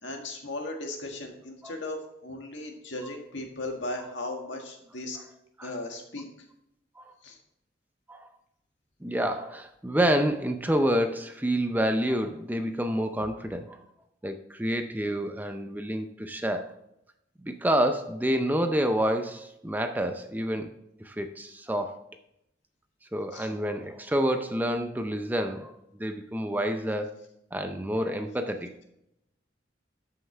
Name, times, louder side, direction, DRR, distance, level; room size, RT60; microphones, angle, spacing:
voice 1, 0.0-5.2 5.6-6.3 7.2-7.4 23.3-23.5, left 2 dB, 75° left, 2 dB, 1.8 m, -37 dB
voice 2, 9.0-13.8 14.2-16.7 17.4-20.7 21.0-22.0 23.1-25.7 26.0-27.1 27.5-28.7, equal, 10° right, 7 dB, 0.5 m, -28 dB
13.0 x 5.7 x 3.3 m, 0.80 s
head